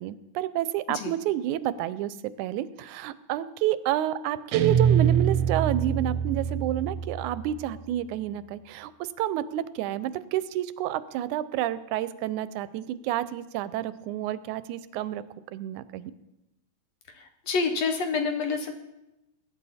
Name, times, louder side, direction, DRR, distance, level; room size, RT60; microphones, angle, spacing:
voice 1, 0.0-8.9 9.2-15.2 15.5-16.1, right 12 dB, 90° right, 15 dB, 2.1 m, -29 dB
Guitar, 4.5-7.7, right 8 dB, 75° right, 1.7 m, -25 dB
voice 2, 17.2-18.7, left 4 dB, 65° left, 6 dB, 2.0 m, -28 dB
21.5 x 10.5 x 4.2 m, 0.94 s
omnidirectional pair, 3.4 m